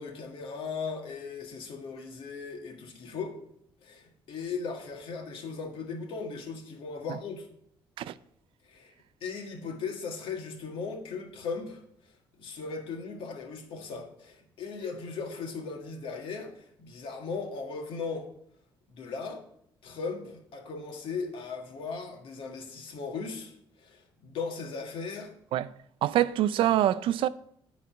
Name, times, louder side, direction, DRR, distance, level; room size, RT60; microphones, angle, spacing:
voice 1, 0.0-3.4 3.8-7.5 8.7-8.9 9.2-11.8 12.4-18.3 18.9-19.4 19.8-25.3, left 5 dB, 75° left, 1.8 m, -37 dB
voice 2, 26.0-27.3, right 12 dB, 75° right, 0.4 m, -25 dB
10.5 x 4.1 x 6.2 m
cardioid pair, 115°, 9 cm